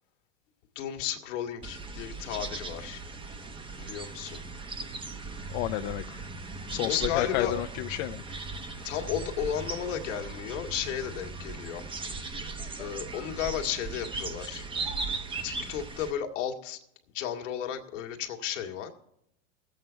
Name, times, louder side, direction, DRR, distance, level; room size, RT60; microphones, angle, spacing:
voice 1, 0.8-3.0 3.8-4.4 6.9-7.6 8.8-11.8 12.8-14.6 15.4-16.8 17.1-18.9, left 9 dB, 85° left, 3 dB, 1.8 m, -34 dB
sound 1, 1.6-16.1, right 3 dB, 15° right, 0.8 m, -38 dB
voice 2, 5.5-6.2 6.7-8.2, left 15 dB, 60° left, 7 dB, 0.6 m, -30 dB
19.5 x 8.1 x 4.4 m, 0.80 s
supercardioid pair, 130°, 36 cm